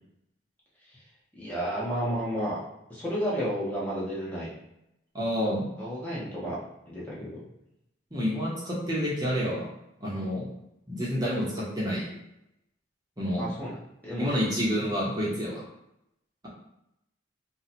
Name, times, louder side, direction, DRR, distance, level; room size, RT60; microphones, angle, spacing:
voice 1, 1.3-2.6 2.9-4.5 5.8-6.6 6.9-7.4 13.4-14.3, equal, 10° left, -8 dB, 0.9 m, -32 dB
voice 2, 5.1-5.7 8.1-9.7 10.0-10.5 10.9-12.1 13.2-13.4 14.2-15.6, equal, 20° right, -6 dB, 0.9 m, -28 dB
2.8 x 2.3 x 4.2 m, 0.82 s
head